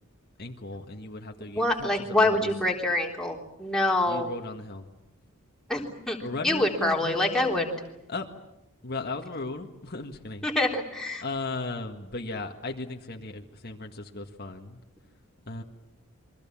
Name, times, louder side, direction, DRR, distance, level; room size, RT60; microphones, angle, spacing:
voice 1, 0.4-2.5 4.1-4.9 6.2-7.6 8.1-8.3 8.8-10.5 11.2-14.8 15.5-15.6, left 3 dB, 45° left, 3 dB, 1.7 m, -36 dB
voice 2, 1.6-4.3 5.7-6.2 6.4-7.7 10.4-11.2, left 1 dB, 5° left, -1 dB, 3.6 m, -26 dB
28.5 x 24.0 x 7.3 m, 0.91 s
head